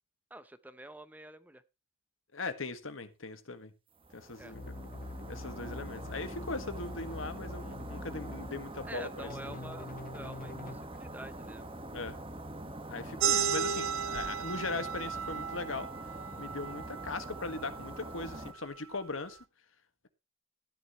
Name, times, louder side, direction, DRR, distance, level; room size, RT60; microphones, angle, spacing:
voice 1, 0.3-1.6 4.4-4.5 8.8-11.7, right 1 dB, 10° right, 0.7 m, -47 dB
voice 2, 2.3-3.7 4.1-4.8 5.3-9.6 11.9-12.2 12.9-15.9 16.4-19.4, left 3 dB, 80° left, 1.7 m, -39 dB
sound 1, 4.0-18.5, right 1 dB, 25° right, 1.5 m, -44 dB
sound 2, 4.5-8.5 9.3-10.8, left 2 dB, 45° left, 0.6 m, -44 dB
sound 3, 13.2-18.4, right 7 dB, 90° right, 0.8 m, -35 dB
14.0 x 10.5 x 3.1 m
head